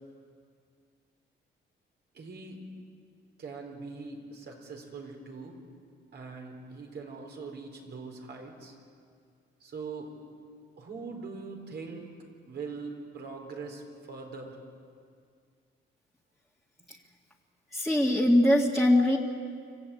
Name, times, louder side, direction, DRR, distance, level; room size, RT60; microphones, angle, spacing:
voice 1, 2.1-2.6 3.4-5.6 6.1-8.8 9.6-10.1 10.8-12.1 12.5-14.6 16.8-16.9, right 4 dB, 60° right, 2 dB, 4.4 m, -42 dB
voice 2, 17.7-19.2, left 1 dB, ahead, -4 dB, 2.1 m, -22 dB
26.0 x 15.0 x 8.6 m, 2.2 s
cardioid pair, 90°, 20 cm